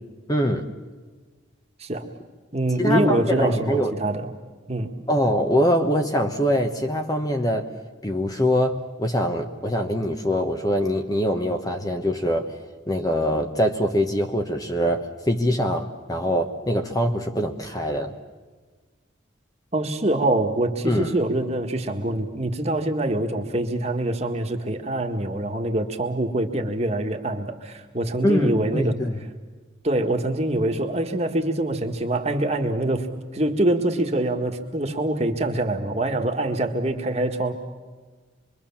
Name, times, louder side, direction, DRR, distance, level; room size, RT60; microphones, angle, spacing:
voice 1, 0.3-0.7 2.8-4.0 5.1-7.7 8.0-12.5 12.9-18.1 20.8-21.2 28.2-29.2, equal, 20° left, 5 dB, 1.2 m, -23 dB
voice 2, 2.5-4.3 4.7-5.0 19.7-28.9 29.8-37.5, right 1 dB, 30° right, 3 dB, 1.8 m, -24 dB
26.5 x 23.0 x 7.3 m, 1.4 s
head